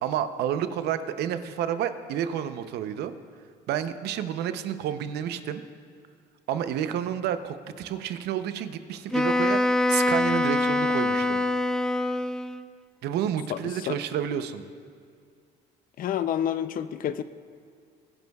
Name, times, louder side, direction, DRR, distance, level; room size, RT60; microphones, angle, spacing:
voice 1, 0.0-3.1 3.7-5.6 6.5-11.4 13.0-14.6, right 9 dB, 75° right, 10 dB, 0.7 m, -30 dB
Wind instrument woodwind instrument, 9.1-12.7, left 2 dB, 5° left, 0.3 m, -24 dB
voice 2, 13.5-14.0 16.0-17.2, left 10 dB, 55° left, 12 dB, 0.5 m, -29 dB
22.0 x 10.5 x 2.4 m, 2.2 s
cardioid pair, 110°, 17 cm